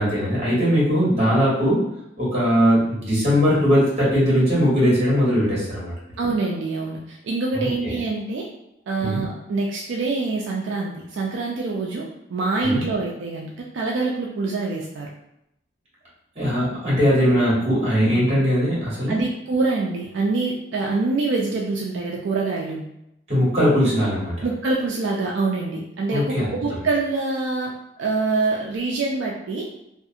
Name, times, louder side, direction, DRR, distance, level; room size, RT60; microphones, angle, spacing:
voice 1, 0.0-1.8 2.2-5.9 7.5-7.9 9.0-9.2 12.6-12.8 16.3-19.2 23.3-24.5 26.1-26.8, equal, 30° right, -7 dB, 1.1 m, -20 dB
voice 2, 6.2-8.5 8.9-12.1 12.3-15.1 19.1-22.8 24.4-27.7 28.0-29.6, right 3 dB, 70° right, -2 dB, 0.3 m, -25 dB
2.4 x 2.4 x 2.7 m, 0.82 s
head